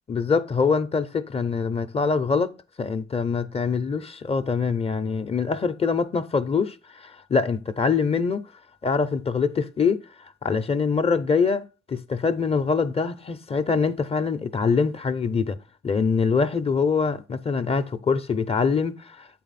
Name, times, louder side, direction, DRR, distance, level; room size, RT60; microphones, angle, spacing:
voice 1, 0.1-2.5 2.8-8.5 8.8-10.0 10.4-11.6 11.9-15.6 15.8-19.3, left 5 dB, 30° left, 0.6 m, -24 dB
8.0 x 4.1 x 4.1 m
cardioid pair, 80°, 19 cm